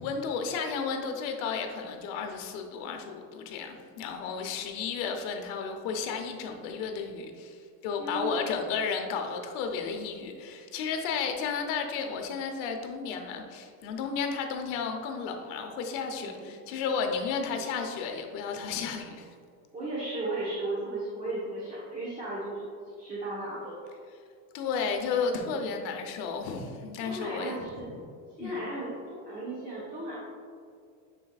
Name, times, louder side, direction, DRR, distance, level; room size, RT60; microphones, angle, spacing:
voice 1, 0.0-19.3 24.5-27.7 27.9-28.0 28.4-28.6, left 5 dB, 75° left, 4 dB, 0.9 m, -33 dB
voice 2, 8.0-8.5 16.1-16.5 17.5-17.6 19.7-22.6 23.0-23.8 25.4-25.7 27.0-27.9 28.4-30.2, right 2 dB, 20° right, -7 dB, 1.1 m, -35 dB
9.8 x 4.6 x 2.4 m, 2.3 s
cardioid pair, 170°, 39 cm